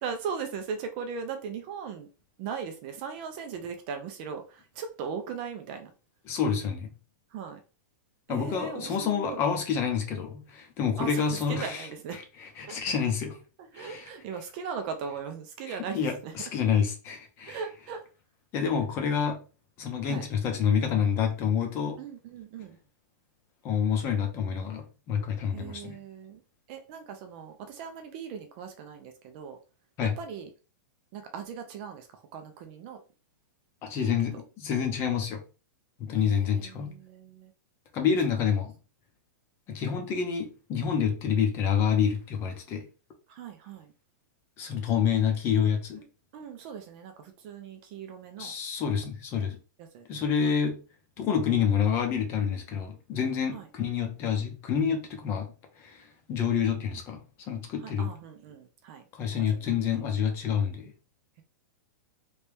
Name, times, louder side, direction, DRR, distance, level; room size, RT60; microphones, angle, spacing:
voice 1, 0.0-2.1 2.4-5.9 7.3-7.6 8.3-9.4 11.0-12.2 12.6-12.8 13.6-16.3 17.5-18.0 20.0-20.3 22.0-22.8 25.5-26.4 26.7-29.6 30.0-30.5 31.1-33.0 34.0-34.3 36.1-37.5 38.3-38.5 43.3-43.9 46.0-46.1 46.3-48.5 49.8-50.5 53.5-53.7 57.8-59.0 59.5-59.7, right 6 dB, 30° right, 0.5 m, -39 dB
voice 2, 6.3-6.9 8.3-11.9 12.6-13.4 13.7-14.0 15.7-17.6 18.5-19.4 19.8-22.0 23.6-26.0 30.0-30.1 33.8-35.4 36.0-36.9 37.9-38.7 39.7-42.8 44.6-46.0 48.4-49.6 50.1-50.8 51.2-58.1 59.1-60.9, left 7 dB, 25° left, 0.7 m, -28 dB
3.2 x 2.8 x 3.4 m
supercardioid pair, 170°, 11 cm